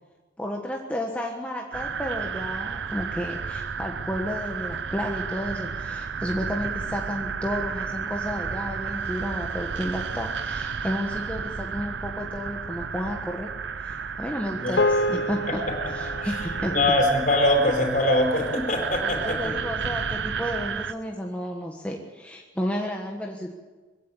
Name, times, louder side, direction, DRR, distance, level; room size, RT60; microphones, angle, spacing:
voice 1, 0.4-13.5 13.8-15.6 15.9-16.8 19.0-23.5, equal, 10° left, 1 dB, 1.4 m, -32 dB
sound 1, 1.7-20.9, right 6 dB, 75° right, 0.8 m, -32 dB
sound 2, 14.8-19.3, left 1 dB, 80° left, 1.1 m, -30 dB
voice 2, 16.7-19.6, left 1 dB, 45° left, 3 dB, 4.7 m, -23 dB
21.0 x 16.5 x 8.7 m, 1.3 s
head